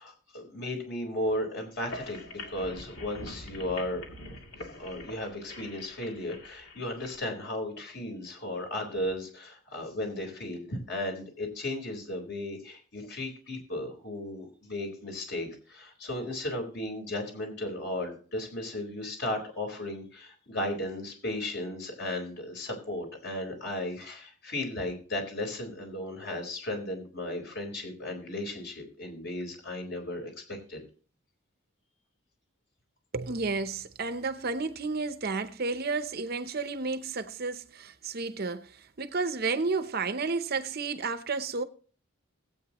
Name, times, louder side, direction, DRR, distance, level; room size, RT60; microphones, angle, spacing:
voice 1, 0.0-4.2 4.8-30.8, left 1 dB, 55° left, 4.2 m, -35 dB
sound 1, 1.7-7.2, left 1 dB, 70° left, 2.5 m, -44 dB
voice 2, 33.1-41.6, right 4 dB, 45° right, 0.7 m, -32 dB
19.0 x 8.6 x 3.0 m
head